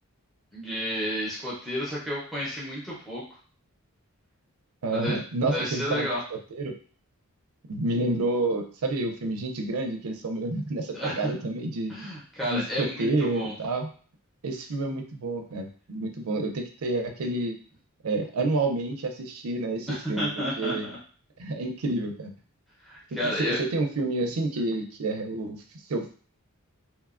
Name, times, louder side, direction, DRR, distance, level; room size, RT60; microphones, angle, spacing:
voice 1, 0.5-3.2 4.9-5.2 5.4-6.2 10.9-11.3 11.9-13.5 19.9-21.0 22.8-23.6, equal, ahead, -7 dB, 0.6 m, -31 dB
voice 2, 4.8-6.7 7.7-11.9 12.5-13.9 14.4-17.6 18.0-20.3 20.6-20.9 21.4-22.3 23.2-25.6 25.9-26.1, right 2 dB, 80° right, 4 dB, 0.5 m, -29 dB
2.9 x 2.2 x 2.4 m, 0.42 s
head